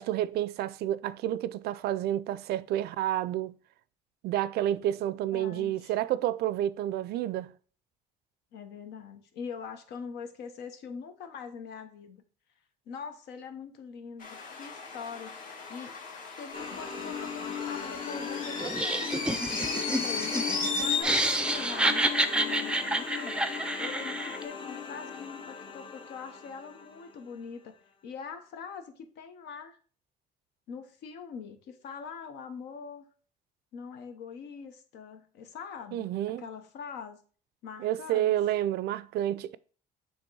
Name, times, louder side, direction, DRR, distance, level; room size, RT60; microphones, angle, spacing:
voice 1, 0.0-3.6 4.2-7.5 35.9-36.5 37.8-39.6, right 12 dB, 75° right, 0.4 m, -30 dB
voice 2, 5.3-5.9 8.5-12.2 12.9-15.4 15.7-16.0 16.4-20.5 20.8-23.4 23.8-29.8 30.7-33.0 33.7-37.2 37.6-38.4, left 6 dB, 80° left, 1.0 m, -43 dB
sound 1, 14.2-21.0, left 4 dB, 55° left, 1.5 m, -35 dB
sound 2, 16.5-27.3, left 6 dB, 30° left, 0.8 m, -38 dB
Laughter, 18.6-24.4, right 1 dB, 5° right, 0.5 m, -29 dB
7.1 x 3.0 x 4.6 m
cardioid pair, 110°, 17 cm